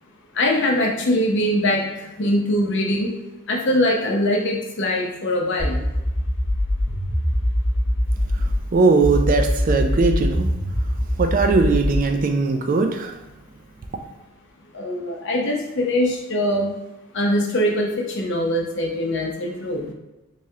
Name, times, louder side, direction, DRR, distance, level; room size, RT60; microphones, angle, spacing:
voice 1, 0.3-3.1 3.5-5.8 14.7-16.7 17.1-19.9, left 1 dB, 55° left, 0 dB, 0.7 m, -22 dB
sound 1, 5.6-8.6 9.0-12.0, left 1 dB, 10° left, 0.8 m, -23 dB
voice 2, 8.3-10.5 11.2-13.1, right 4 dB, 40° right, 5 dB, 0.3 m, -20 dB
3.6 x 3.2 x 2.7 m, 1.0 s
head